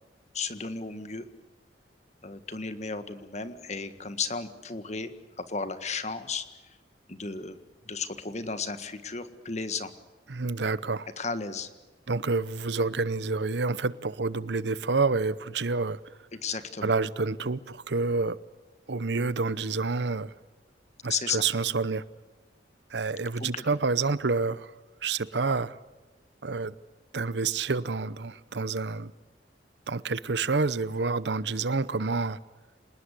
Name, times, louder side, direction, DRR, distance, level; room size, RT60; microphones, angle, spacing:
voice 1, 0.3-1.3 2.2-5.1 5.4-6.4 7.1-7.6 7.8-9.9 11.2-11.7 16.3-16.9 21.1-21.4 23.4-23.6, left 5 dB, 40° left, 11 dB, 1.7 m, -34 dB
voice 2, 10.3-11.1 12.1-16.0 16.8-18.4 18.9-20.3 21.0-22.0 22.9-24.7 25.0-25.8 26.4-26.7 27.1-29.1 29.9-32.4, right 4 dB, 70° right, 18 dB, 0.8 m, -28 dB
27.5 x 19.5 x 8.3 m, 1.2 s
head